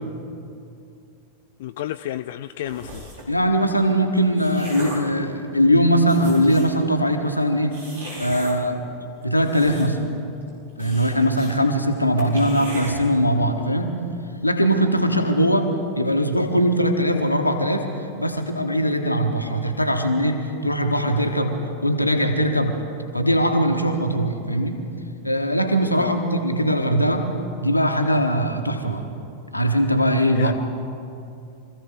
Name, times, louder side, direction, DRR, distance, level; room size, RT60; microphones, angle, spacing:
voice 1, 1.6-3.0 15.1-15.2 26.0-26.2 30.3-30.5, left 12 dB, 55° left, 10 dB, 0.3 m, -31 dB
sound 1, 2.7-3.3 4.0-5.1 5.7-5.8 6.0-6.8 7.7-8.5 9.2-10.1 10.4-10.5 10.8-11.5 11.8-11.9 12.2-12.9, right 1 dB, 65° right, 5.1 m, -37 dB
voice 2, 3.3-7.8 8.2-8.8 9.2-10.0 10.8-14.0 14.4-17.9 18.2-22.8 23.1-24.8 25.2-27.3 27.6-29.1 29.5-30.5, equal, 85° left, 4 dB, 1.3 m, -21 dB
25.0 x 15.0 x 3.7 m, 2.6 s
figure-of-eight pair, 90°, 0 cm